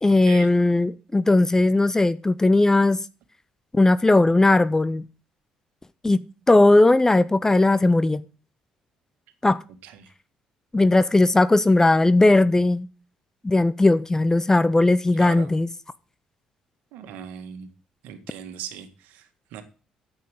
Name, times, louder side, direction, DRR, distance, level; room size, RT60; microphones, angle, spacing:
voice 1, 0.0-3.0 3.7-5.0 6.0-8.2 9.4-9.6 10.7-12.9 13.4-15.7, left 2 dB, 20° left, 0.7 m, -18 dB
voice 2, 15.1-15.5 16.9-17.7 18.0-19.6, right 9 dB, 75° right, 1.8 m, -39 dB
9.3 x 8.0 x 7.9 m
hypercardioid pair, 55°, 3 cm